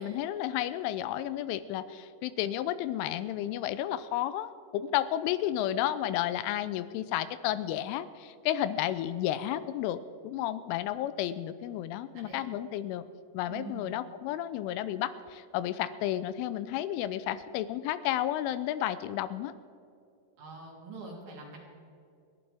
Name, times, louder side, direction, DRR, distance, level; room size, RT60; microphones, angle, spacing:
voice 1, 0.0-13.0 13.3-19.5, left 12 dB, 85° left, 13 dB, 3.0 m, -32 dB
voice 2, 12.1-12.5 13.5-14.0 20.4-21.6, right 3 dB, 65° right, -3 dB, 5.3 m, -45 dB
29.5 x 11.0 x 3.5 m, 2.5 s
omnidirectional pair, 5.7 m